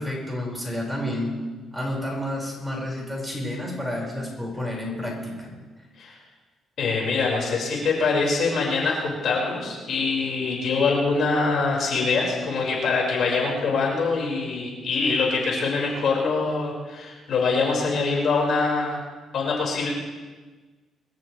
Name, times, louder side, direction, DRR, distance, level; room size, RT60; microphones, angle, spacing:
voice 1, 0.0-1.4 1.7-5.6, left 1 dB, 5° right, -3 dB, 5.9 m, -30 dB
voice 2, 6.8-19.0 19.3-19.9, left 4 dB, 65° left, -2 dB, 5.7 m, -24 dB
25.0 x 14.0 x 3.5 m, 1.3 s
cardioid pair, 90°, 0 cm